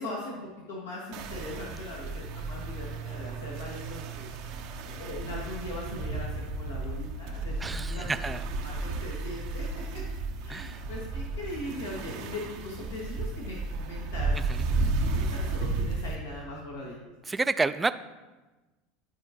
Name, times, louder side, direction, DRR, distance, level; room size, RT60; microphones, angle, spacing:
voice 1, 0.0-8.2 8.6-10.0 10.4-14.3 14.7-17.0, left 1 dB, 80° left, -4 dB, 1.5 m, -40 dB
sound 1, 1.1-16.2, right 3 dB, 60° right, 0.8 m, -33 dB
voice 2, 7.6-8.4 10.5-10.8 14.5-14.7 17.3-18.0, right 3 dB, 15° right, 12 dB, 0.4 m, -29 dB
11.0 x 4.5 x 2.8 m, 1.2 s
hypercardioid pair, 80°, 0 cm